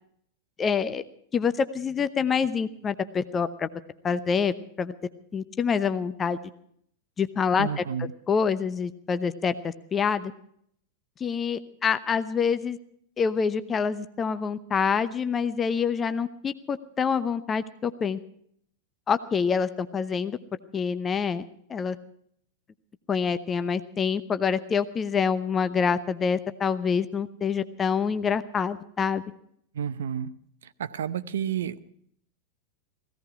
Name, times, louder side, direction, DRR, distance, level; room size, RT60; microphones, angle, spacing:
voice 1, 0.6-1.0 1.3-3.7 4.0-4.5 4.8-4.9 5.3-6.4 7.2-7.8 8.3-10.3 11.2-12.8 13.2-18.2 19.1-20.4 20.7-21.4 21.7-22.0 23.1-29.2, left 6 dB, 20° left, 13 dB, 0.8 m, -26 dB
voice 2, 7.6-8.1 29.7-30.3 30.8-31.9, right 8 dB, 60° right, 15 dB, 0.7 m, -30 dB
17.5 x 16.0 x 4.8 m, 0.67 s
figure-of-eight pair, 90°, 0 cm